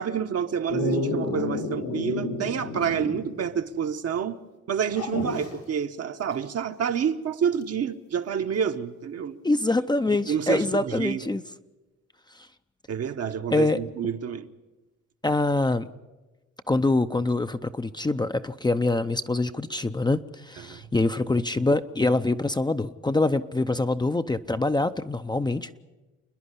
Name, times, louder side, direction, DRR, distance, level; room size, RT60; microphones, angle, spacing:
voice 1, 0.0-4.4 4.7-9.4 10.1-11.2 12.9-14.5 20.6-20.8, right 7 dB, 55° right, 1.1 m, -28 dB
Dog, 0.7-3.4 3.7-3.8 4.9-5.5 7.6-7.7, left 2 dB, 90° left, 5.0 m, -30 dB
voice 2, 9.4-11.4 13.5-13.8 15.2-15.9 16.7-25.8, left 2 dB, 15° left, 0.6 m, -25 dB
28.5 x 10.5 x 9.9 m
cardioid pair, 90°, 30 cm